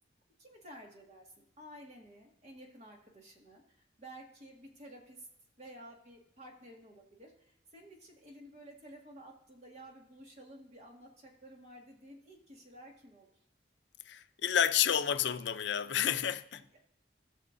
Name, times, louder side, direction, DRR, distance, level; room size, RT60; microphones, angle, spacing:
voice 1, 0.4-5.3 5.6-13.3, right 1 dB, 40° right, 1.9 m, -53 dB
voice 2, 14.1-16.6, left 9 dB, 80° left, 0.5 m, -30 dB
18.5 x 6.3 x 2.7 m
head